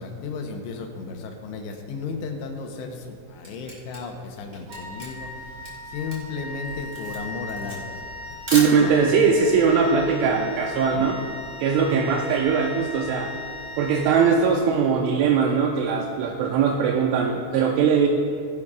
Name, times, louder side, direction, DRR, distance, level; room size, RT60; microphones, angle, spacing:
voice 1, 0.0-8.0 8.3-8.9 10.8-11.3 11.8-12.1, left 4 dB, 75° left, 3 dB, 2.7 m, -35 dB
Camera, 3.4-9.2, right 1 dB, 40° right, 0.9 m, -36 dB
Wind instrument woodwind instrument, 4.7-14.8, left 2 dB, 65° right, 3.3 m, -38 dB
voice 2, 8.5-11.2 11.6-13.3 13.8-18.1, right 6 dB, 85° right, 2 dB, 2.8 m, -20 dB
19.0 x 10.5 x 2.4 m, 2.3 s
omnidirectional pair, 5.9 m